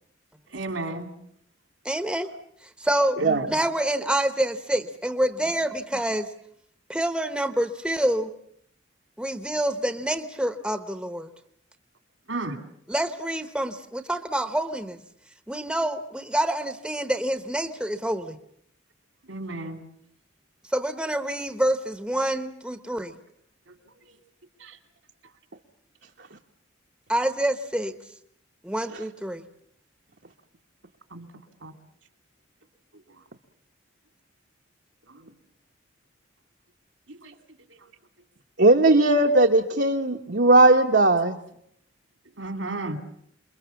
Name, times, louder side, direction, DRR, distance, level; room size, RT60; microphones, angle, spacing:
voice 1, 0.5-1.1 3.3-3.4 12.3-12.6 19.3-19.8 31.1-31.3 31.6-31.7 37.2-37.3 42.4-43.0, right 2 dB, 80° right, 7 dB, 2.8 m, -32 dB
voice 2, 1.8-2.3 2.8-3.2 3.5-6.3 6.9-8.3 9.2-11.3 12.9-15.0 15.5-18.4 20.7-23.1 27.1-27.9 28.6-29.4, right 1 dB, 5° right, 9 dB, 1.0 m, -27 dB
voice 3, 38.6-41.3, right 2 dB, 65° right, 2 dB, 1.3 m, -18 dB
28.5 x 22.0 x 7.1 m, 0.69 s
head